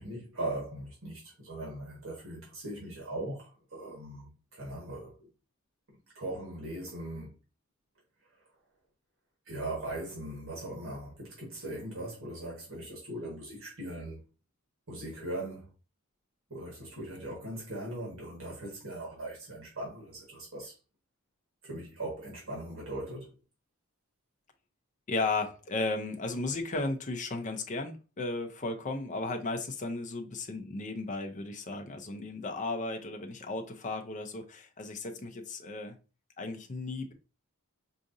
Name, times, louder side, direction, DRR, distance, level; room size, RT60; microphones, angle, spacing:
voice 1, 0.0-5.3 6.1-7.3 9.4-14.2 14.9-15.7 16.5-20.7 21.6-23.3, right 1 dB, 65° right, 1.6 m, -39 dB
voice 2, 25.1-36.0 36.4-37.1, left 3 dB, 35° left, 0.5 m, -35 dB
4.8 x 2.5 x 2.6 m
head